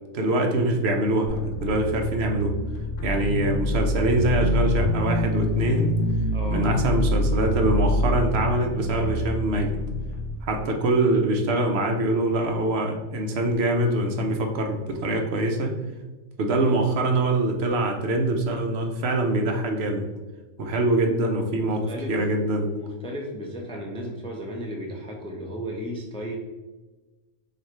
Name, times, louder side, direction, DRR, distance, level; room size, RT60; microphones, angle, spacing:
voice 1, 0.1-2.5 3.0-5.9 6.5-9.7 10.4-15.8 16.4-20.1 20.6-21.8 22.1-22.7, right 1 dB, 65° right, 3 dB, 0.9 m, -24 dB
sound 1, 1.3-10.4, left 1 dB, 85° left, 0.9 m, -26 dB
voice 2, 6.3-6.7 21.5-22.1 22.5-26.4, equal, 5° left, -1 dB, 0.4 m, -35 dB
4.9 x 2.5 x 4.3 m, 1.2 s
omnidirectional pair, 1.2 m